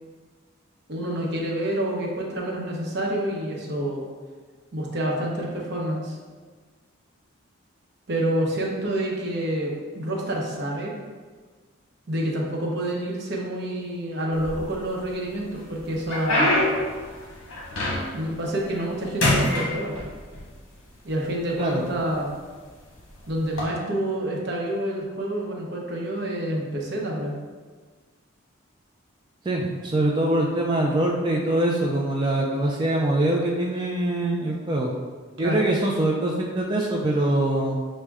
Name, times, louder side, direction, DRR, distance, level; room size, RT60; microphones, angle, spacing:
voice 1, 0.9-4.0 4.7-6.2 8.1-11.0 12.1-16.5 18.1-20.0 21.0-22.3 23.3-27.3 35.4-35.7, right 1 dB, 55° right, -2 dB, 0.8 m, -28 dB
sound 1, 14.3-15.1 15.6-18.3 18.7-18.9 19.2-20.4 21.2-21.3 22.0-22.3 23.4-23.6, left 1 dB, 70° left, 1.1 m, -24 dB
voice 2, 29.4-34.9 35.4-37.8, right 1 dB, 20° right, -2 dB, 0.3 m, -23 dB
6.1 x 2.2 x 3.4 m, 1.5 s
head